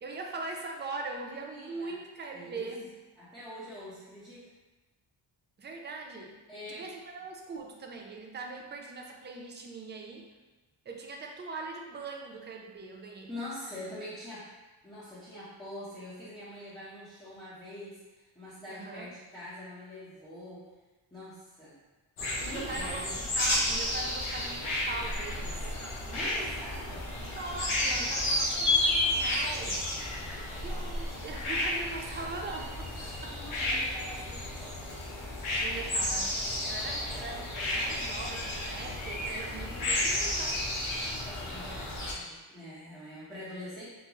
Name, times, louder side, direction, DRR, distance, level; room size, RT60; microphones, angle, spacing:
voice 1, 0.0-2.9 5.6-6.4 6.7-10.3 10.9-13.3 18.7-19.1 22.4-23.1 23.3-25.8 27.3-29.8 30.6-33.4 35.6-36.4 36.6-40.6, right 3 dB, 25° right, 1 dB, 0.3 m, -41 dB
voice 2, 1.5-1.9 2.3-2.7 3.2-4.4 6.5-6.9 13.3-14.5 14.8-20.6 21.1-21.8 22.4-23.2 26.1-27.1 33.3-34.8 41.2-43.8, left 1 dB, 10° left, -13 dB, 0.8 m, -44 dB
sound 1, 22.2-42.1, left 1 dB, 80° left, 0.9 m, -32 dB
3.9 x 2.3 x 2.9 m, 1.2 s
wide cardioid pair, 120°, 49 cm